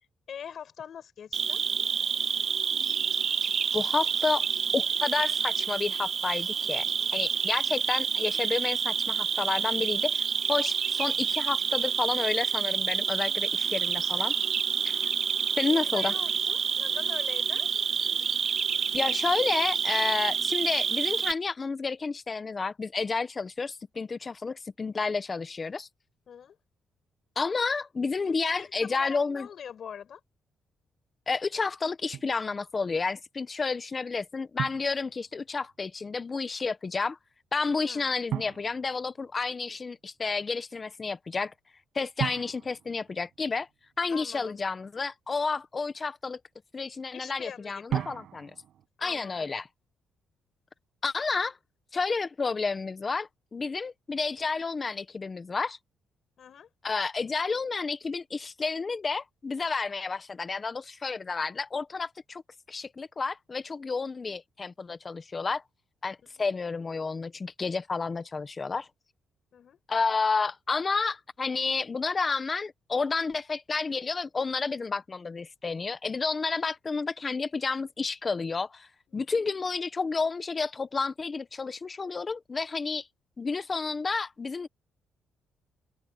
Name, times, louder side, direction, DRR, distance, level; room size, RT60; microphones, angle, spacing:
voice 1, 0.3-1.6 15.6-17.7 26.3-26.6 28.2-30.2 37.8-38.1 44.1-44.6 47.1-48.1 49.0-49.5 56.4-56.7 66.3-66.5 69.5-69.8 79.1-79.4, left 8 dB, 60° left, 6.3 m, -44 dB
Cricket, 1.3-21.3, right 7 dB, 50° right, 0.7 m, -28 dB
voice 2, 3.7-4.4 4.7-6.9 7.1-14.3 14.8-14.9 15.6-16.1 18.9-25.9 27.3-29.5 31.3-37.2 37.5-41.5 41.9-43.7 44.0-46.4 46.7-48.5 49.0-49.7 51.0-51.6 51.9-55.8 56.8-62.4 62.7-65.6 66.0-68.9 69.9-78.9 79.1-83.1 83.4-84.7, left 4 dB, 30° left, 1.3 m, -30 dB
Drum, 32.1-32.4 34.6-35.7 38.3-39.7 42.2-43.9 47.9-48.9, right 10 dB, 70° right, 6.8 m, -37 dB
open air
cardioid pair, 90°, 0 cm